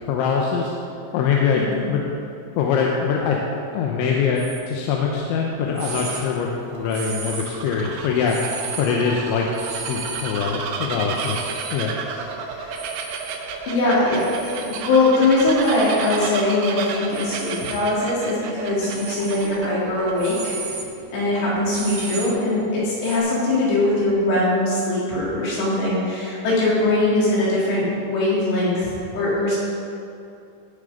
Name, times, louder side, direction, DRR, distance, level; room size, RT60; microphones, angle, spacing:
voice 1, 0.1-0.7 1.1-2.0 2.6-3.4 3.7-8.4 8.8-11.9, left 6 dB, 75° left, -1 dB, 3.1 m, -23 dB
sound 1, 4.4-4.6 5.3-5.4 5.8-6.2 6.9-7.7 8.3-8.8 9.5-10.2 11.1-11.7 12.7-13.4 14.2-14.8 15.6-16.3 17.1-17.8 18.8-19.5 20.0-23.2, right 5 dB, 60° right, 3.3 m, -35 dB
Bird vocalization bird call bird song, 5.5-20.6, right 5 dB, 75° right, 2.9 m, -32 dB
voice 2, 12.4-12.8 13.7-20.5 21.1-29.6, left 2 dB, 60° left, -7 dB, 5.5 m, -21 dB
17.0 x 7.3 x 5.3 m, 2.7 s
omnidirectional pair, 5.8 m